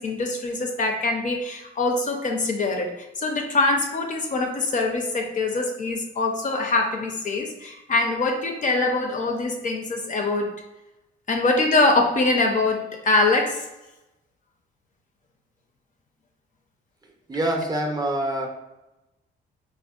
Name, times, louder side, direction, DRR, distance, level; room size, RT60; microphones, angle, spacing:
voice 1, 0.0-10.5 11.3-13.7, left 2 dB, 40° left, 3 dB, 0.5 m, -23 dB
voice 2, 17.3-18.5, right 1 dB, 20° right, 1 dB, 0.5 m, -25 dB
3.5 x 2.1 x 2.2 m, 0.97 s
cardioid pair, 90°, 20 cm